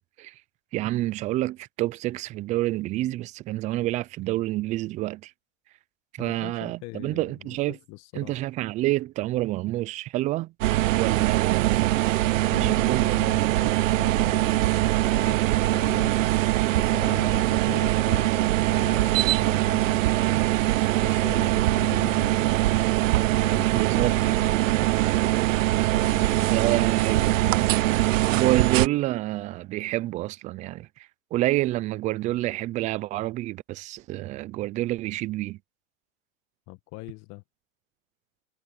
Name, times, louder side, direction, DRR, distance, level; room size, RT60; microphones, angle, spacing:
voice 1, 0.7-5.3 6.1-7.8 8.1-10.5 10.9-11.9 12.5-13.1 13.3-13.4 23.7-24.2 26.5-27.4 28.0-35.6, right 17 dB, 20° right, 0.4 m, -28 dB
voice 2, 6.2-8.3 12.5-16.3 16.8-20.4 21.0-22.6 23.4-25.0 25.9-26.9 27.1-27.9 36.7-37.4, left 22 dB, 40° left, 1.5 m, -41 dB
sound 1, 10.6-28.9, right 16 dB, 70° right, 0.8 m, -22 dB
hypercardioid pair, 125°, 40 cm